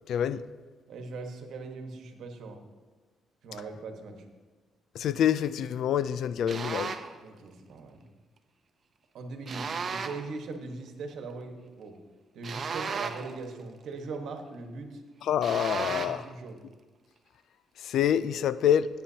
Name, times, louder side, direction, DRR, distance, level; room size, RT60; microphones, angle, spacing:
voice 1, 0.1-0.4 5.0-7.0 15.3-16.2 17.8-18.9, left 9 dB, 75° left, 0.3 m, -26 dB
voice 2, 0.9-2.6 3.4-4.2 7.2-8.0 9.1-11.9 12.3-15.0 15.7-16.6, right 3 dB, 75° right, 1.3 m, -40 dB
sound 1, 6.5-7.2 9.5-10.3 12.4-13.4 15.4-16.3, right 5 dB, 45° right, 0.7 m, -35 dB
15.5 x 8.9 x 2.8 m
cardioid pair, 90°, 0 cm